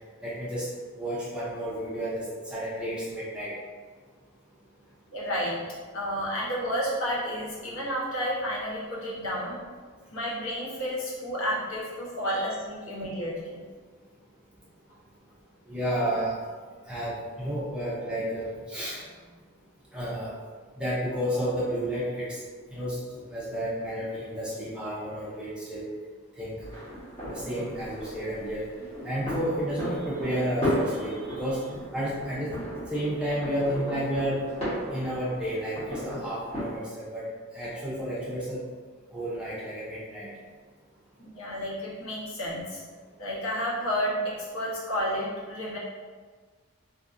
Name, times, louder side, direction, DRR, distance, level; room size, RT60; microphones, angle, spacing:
voice 1, 0.2-0.7 1.0-3.5 12.3-12.4 15.7-16.3 16.9-19.0 19.9-20.3 20.8-22.4 22.7-23.0 23.3-25.9 26.4-26.6 27.3-28.7 29.0-31.6 31.9-32.6 32.9-34.4 34.9-37.3 37.5-38.6 39.1-40.3, equal, 5° right, -8 dB, 0.5 m, -31 dB
voice 2, 5.1-5.6 5.9-9.6 10.1-13.6 41.2-42.8 43.2-45.8, equal, 75° left, -6 dB, 0.8 m, -31 dB
sound 1, 26.6-36.8, equal, 30° left, 1.1 m, -35 dB
2.7 x 2.3 x 2.5 m, 1.5 s
head